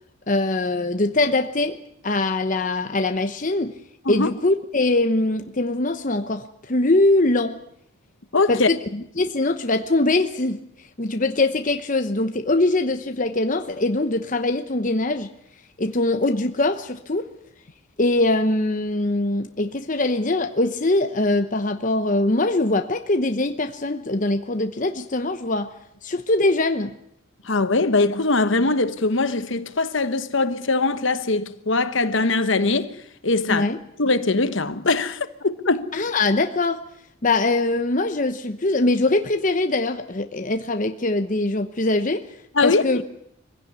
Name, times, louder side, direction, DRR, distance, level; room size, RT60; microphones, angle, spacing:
voice 1, 0.3-1.8 2.0-3.7 4.1-7.6 8.5-10.6 11.0-15.3 15.8-17.3 18.0-25.7 26.0-26.9 33.5-33.8 35.9-36.8 37.2-42.2 42.6-43.0, left 2 dB, 35° left, 0.9 m, -22 dB
voice 2, 8.3-8.7 27.4-32.9 33.2-33.7 34.0-35.9 42.5-43.0, left 3 dB, 60° left, 1.2 m, -21 dB
23.5 x 16.0 x 9.6 m
head